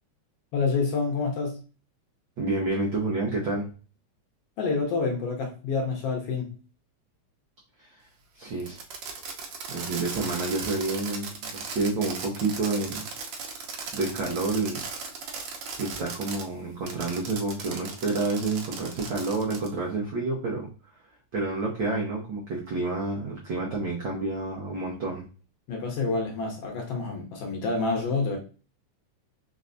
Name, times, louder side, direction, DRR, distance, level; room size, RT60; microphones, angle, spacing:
voice 1, 0.5-1.6 4.6-6.5 25.7-28.4, left 4 dB, 70° left, 1.6 m, -28 dB
voice 2, 2.4-3.7 7.8-8.0 8.3-8.8 9.7-13.0 13.9-14.8 15.8-20.7 21.3-25.3, right 3 dB, 85° right, 1.0 m, -29 dB
Fireworks, 8.6-16.4 16.9-19.7, right 5 dB, 70° right, 1.4 m, -37 dB
4.7 x 3.2 x 2.5 m
omnidirectional pair, 3.4 m